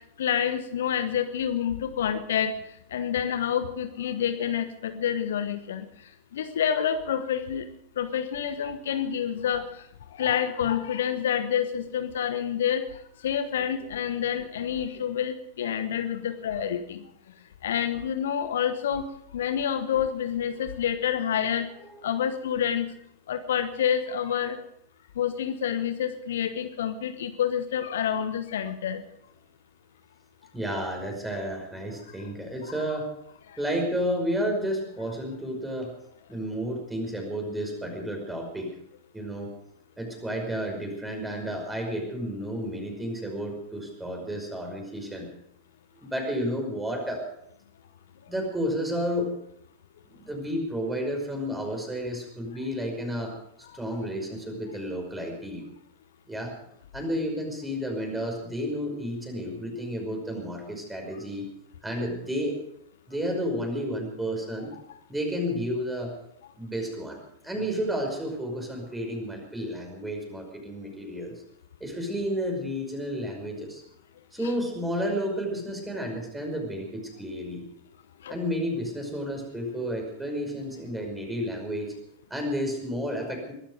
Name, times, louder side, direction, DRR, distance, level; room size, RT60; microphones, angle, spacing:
voice 1, 0.2-2.5 2.9-5.9 6.3-7.7 8.0-9.7 10.2-12.8 13.2-17.0 17.6-19.0 19.3-21.7 22.0-22.9 23.3-24.6 25.2-29.0 74.4-74.5 78.2-78.3, left 9 dB, 60° left, 10 dB, 1.1 m, -28 dB
voice 2, 30.5-33.1 33.6-35.9 36.3-38.7 39.1-39.5 40.0-45.3 45.9-47.2 48.3-49.3 50.0-53.3 53.7-55.7 56.3-56.5 56.9-61.5 61.8-62.6 63.1-64.7 65.1-66.2 66.6-67.2 67.4-71.4 71.8-73.8 74.3-77.6 78.3-81.9 82.3-83.5, equal, 10° right, 2 dB, 5.5 m, -31 dB
22.0 x 12.5 x 5.2 m, 0.72 s
figure-of-eight pair, 90°, 0 cm